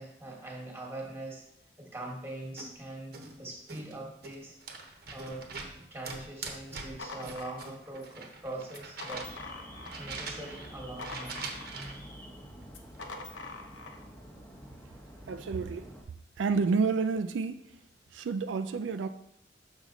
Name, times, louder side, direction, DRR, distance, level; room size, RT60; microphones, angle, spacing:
voice 1, 0.0-1.4 1.8-4.5 4.8-5.4 5.7-9.3 10.0-11.4, right 2 dB, 15° right, -1 dB, 1.4 m, -42 dB
sound 1, 2.6-2.7 3.1-3.4 3.7-5.8 6.0-9.5 9.8-10.7 11.0-12.1, right 4 dB, 55° right, 1.0 m, -43 dB
sound 2, 7.0-8.1 8.7-10.1 10.5-12.0 12.7-14.0, left 3 dB, 80° left, 0.9 m, -44 dB
Alarm, 9.1-16.0, equal, 10° left, 0.9 m, -48 dB
voice 2, 15.3-15.9 16.4-17.6 18.1-19.1, right 4 dB, 80° right, 10 dB, 0.4 m, -29 dB
6.5 x 6.2 x 3.8 m, 0.77 s
head